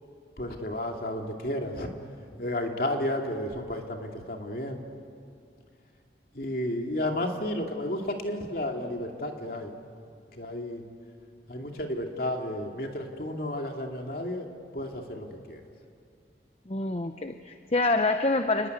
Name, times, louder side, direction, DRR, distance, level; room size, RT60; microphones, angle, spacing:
voice 1, 0.4-1.9 2.4-4.8 6.3-9.7 10.3-10.8 11.5-14.5 14.7-15.6, left 1 dB, 55° left, 2 dB, 2.7 m, -32 dB
voice 2, 16.7-18.7, left 2 dB, 35° left, 7 dB, 0.8 m, -26 dB
30.0 x 20.0 x 9.7 m, 2.4 s
head